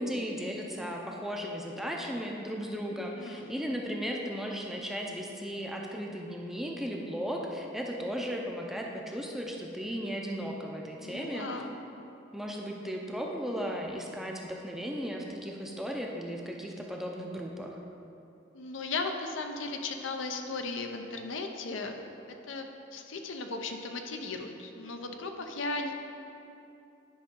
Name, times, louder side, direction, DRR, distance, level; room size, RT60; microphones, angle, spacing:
voice 1, 0.0-11.5 12.3-17.8, equal, ahead, 0 dB, 0.5 m, -36 dB
voice 2, 2.9-3.5 11.0-11.7 18.5-21.9 22.5-22.7 22.9-25.9, left 3 dB, 75° left, 4 dB, 0.6 m, -36 dB
10.0 x 5.2 x 3.7 m, 2.8 s
head